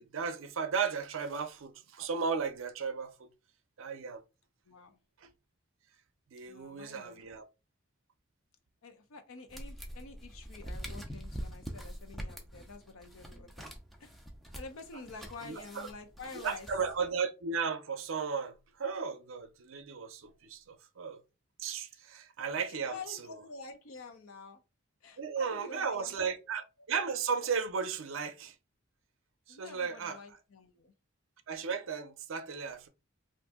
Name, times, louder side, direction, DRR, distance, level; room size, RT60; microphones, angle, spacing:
voice 1, 0.0-3.3 3.8-4.2 5.2-5.3 6.3-7.4 15.4-15.9 16.4-21.2 21.6-23.2 25.2-28.5 29.5-30.2 31.5-32.9, right 5 dB, 70° right, 0.5 m, -35 dB
voice 2, 4.7-5.0 6.4-7.2 8.8-13.7 14.0-14.1 14.5-16.7 22.7-24.6 25.0-26.2 29.5-30.9, left 4 dB, 80° left, 0.6 m, -48 dB
sound 1, 9.5-17.1, equal, ahead, 0.4 m, -45 dB
2.6 x 2.6 x 3.5 m
head